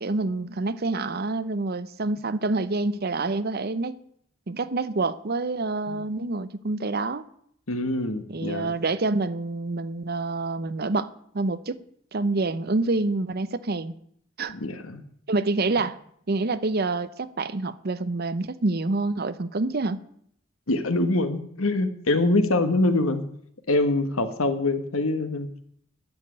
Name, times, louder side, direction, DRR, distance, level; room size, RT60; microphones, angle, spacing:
voice 1, 0.0-4.0 4.5-7.3 8.3-11.1 11.3-11.8 12.1-13.9 14.4-14.5 15.3-16.0 16.3-20.0, right 3 dB, 50° right, 0.7 m, -27 dB
voice 2, 7.7-8.7 14.5-15.0 20.7-23.2 23.7-25.5, left 2 dB, 85° left, 1.4 m, -24 dB
11.0 x 7.5 x 9.7 m
head